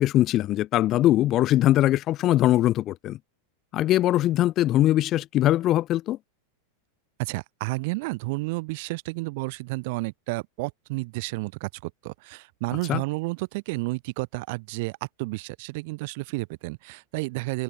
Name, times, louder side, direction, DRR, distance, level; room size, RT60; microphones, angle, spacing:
voice 1, 0.0-3.2 3.7-6.2 12.9-13.0, left 14 dB, 35° left, 1.0 m, -21 dB
voice 2, 7.2-17.6, right 25 dB, 50° right, 2.9 m, -31 dB
figure-of-eight pair, 90°, 0 cm